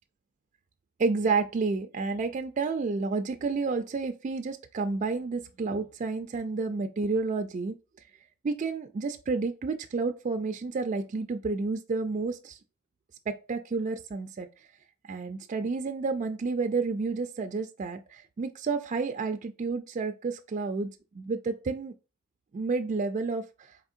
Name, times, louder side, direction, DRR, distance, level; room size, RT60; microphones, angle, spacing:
voice 1, 1.0-7.8 8.4-12.6 13.3-14.5 15.0-20.9 21.1-21.9 22.5-23.8, right 4 dB, 35° right, 0.3 m, -30 dB
4.2 x 3.6 x 2.4 m
head